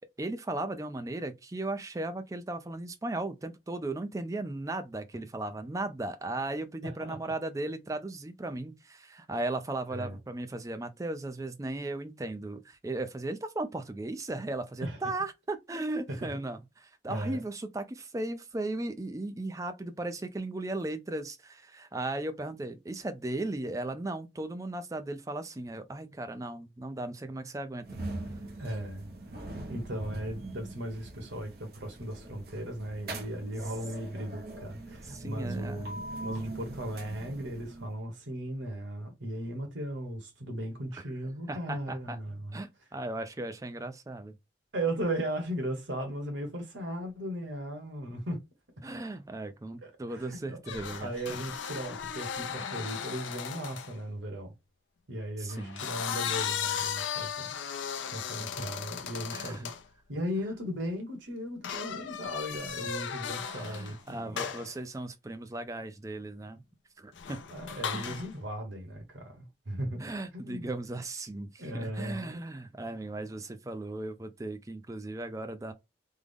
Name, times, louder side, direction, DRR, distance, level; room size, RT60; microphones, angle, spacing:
voice 1, 0.2-28.0 35.0-35.9 40.9-41.0 41.5-42.2 42.5-44.3 48.8-51.4 52.6-52.8 55.4-55.8 58.4-58.5 59.3-59.6 63.5-66.6 67.0-67.4 67.9-68.1 70.0-75.7, right 2 dB, 15° right, 0.4 m, -36 dB
voice 2, 6.8-7.2 9.9-10.2 14.8-15.0 16.1-16.3 17.1-17.4 28.6-29.1 29.7-42.6 44.7-48.4 49.8-50.6 51.0-54.5 55.1-57.5 58.1-59.7 60.1-64.5 67.5-70.0 70.3-70.7 71.6-72.4, right 1 dB, 85° right, 1.2 m, -37 dB
sound 1, 27.8-38.0, right 2 dB, 55° right, 0.7 m, -42 dB
sound 2, 50.7-54.0 55.5-59.8 61.6-64.0 64.4-64.7 67.1-68.3, left 8 dB, 85° left, 0.5 m, -36 dB
3.5 x 2.0 x 3.4 m
head